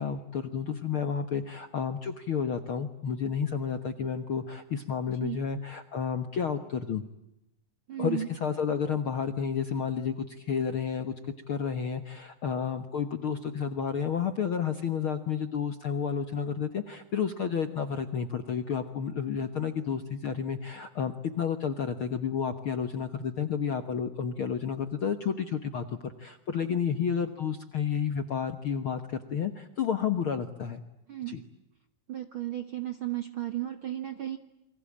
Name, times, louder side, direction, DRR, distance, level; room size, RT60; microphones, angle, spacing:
voice 1, 0.0-7.0 8.0-11.1 11.5-30.8 31.3-31.4, left 7 dB, 60° left, 10 dB, 1.5 m, -31 dB
voice 2, 7.9-8.3 31.1-31.4 32.1-34.4, right 13 dB, 60° right, 9 dB, 1.4 m, -34 dB
28.5 x 24.0 x 8.7 m, 0.88 s
omnidirectional pair, 4.1 m